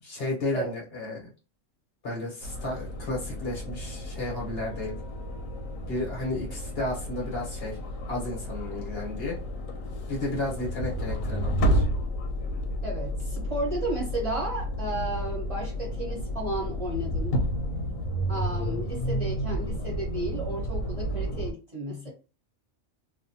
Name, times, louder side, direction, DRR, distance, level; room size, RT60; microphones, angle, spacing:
voice 1, 0.0-1.3 2.0-5.0 5.9-7.8 8.1-9.4 10.1-11.8, left 2 dB, 50° left, 1.2 m, -33 dB
sound 1, 2.4-21.5, equal, 90° left, 1.0 m, -31 dB
voice 2, 12.8-17.4 18.3-22.1, right 1 dB, 30° right, 0.9 m, -33 dB
2.5 x 2.3 x 2.7 m
omnidirectional pair, 1.3 m